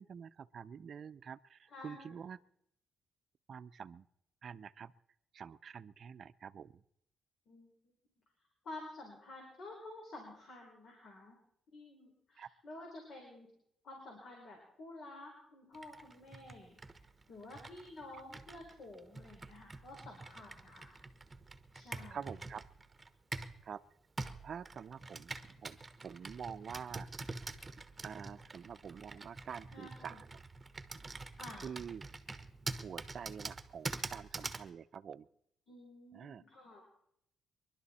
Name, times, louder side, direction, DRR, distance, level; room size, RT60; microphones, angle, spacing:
voice 1, 0.0-2.4 3.5-4.1 4.4-4.9 5.3-6.8 12.4-12.5 22.1-22.6 23.6-23.8 24.4-25.8 26.0-27.1 28.0-30.3 31.6-32.0 32.8-35.3 36.1-36.4, right 7 dB, 55° right, 15 dB, 0.6 m, -47 dB
voice 2, 1.7-2.2 7.5-7.7 8.6-11.4 11.7-13.5 13.8-16.8 17.3-21.0 21.7-22.2 29.7-30.2 31.4-31.7 35.7-36.9, left 2 dB, 60° left, 1 dB, 3.8 m, -51 dB
Computer keyboard, 15.7-23.6 24.2-34.7, right 3 dB, 20° right, 1.1 m, -46 dB
24.0 x 11.5 x 4.2 m, 0.73 s
cardioid pair, 90°, 0 cm